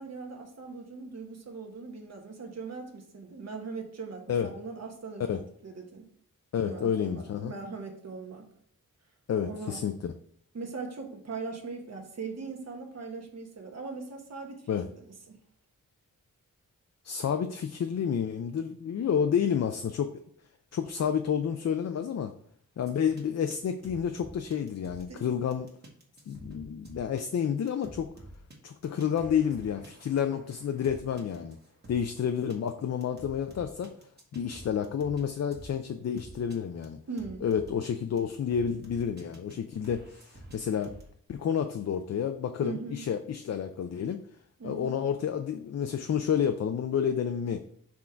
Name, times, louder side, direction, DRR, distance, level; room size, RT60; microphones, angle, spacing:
voice 1, 0.0-6.0 6.6-8.5 9.4-9.9 10.5-15.4 25.1-25.2 37.1-37.5 42.6-43.0 44.6-45.0, right 4 dB, 50° right, 3 dB, 1.2 m, -40 dB
voice 2, 6.5-7.5 9.3-10.1 14.7-14.9 17.0-20.2 20.7-22.3 22.8-25.7 26.3-28.1 28.6-31.6 31.9-33.9 34.3-37.0 37.4-40.9 41.3-44.2 44.6-47.6, left 8 dB, 50° left, 7 dB, 0.4 m, -30 dB
sound 1, 22.8-23.2 23.5-23.6 23.8-25.2 25.5-32.2 32.5-32.7 33.0-35.2 35.5-35.7 36.2-36.6 36.8-36.9 37.2-37.9 38.2-39.5 39.8-41.1, right 1 dB, 30° right, 1.4 m, -49 dB
6.0 x 3.8 x 4.4 m, 0.64 s
wide cardioid pair, 165°, 33 cm